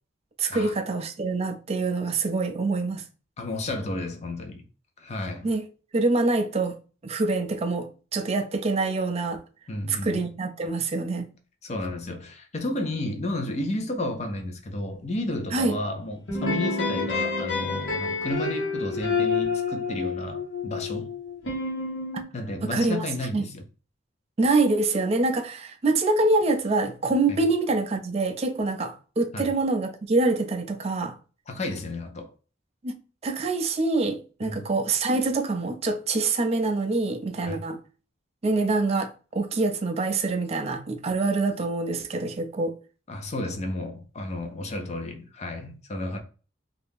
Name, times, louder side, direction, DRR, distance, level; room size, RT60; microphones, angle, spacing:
voice 1, 0.4-3.0 5.4-6.8 7.0-9.4 9.9-11.3 15.5-15.8 22.6-23.1 23.3-23.4 24.4-31.2 32.8-32.9 33.2-37.8 38.4-42.7, right 3 dB, 35° right, 0.4 m, -25 dB
voice 2, 3.4-4.6 5.0-5.5 9.7-10.2 11.6-21.1 22.3-23.6 27.3-27.4 29.3-29.5 31.5-32.3 34.4-34.7 37.5-37.6 43.1-46.2, left 1 dB, 35° left, 0.6 m, -32 dB
sound 1, 16.3-22.2, left 4 dB, 75° left, 1.0 m, -28 dB
2.7 x 2.4 x 3.5 m
head